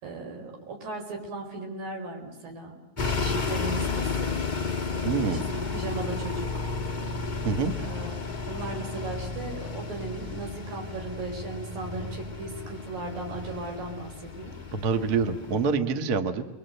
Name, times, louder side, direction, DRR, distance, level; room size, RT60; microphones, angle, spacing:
voice 1, 0.0-4.4 4.9-6.7 7.8-8.1 8.5-14.6, right 2 dB, 85° right, 2 dB, 6.3 m, -37 dB
sound 1, 3.0-15.7, left 4 dB, 85° left, 0.4 m, -33 dB
voice 2, 5.0-5.5 7.4-7.7 14.7-16.4, right 5 dB, 45° right, 8 dB, 1.3 m, -26 dB
29.0 x 22.5 x 8.1 m, 0.97 s
omnidirectional pair, 3.8 m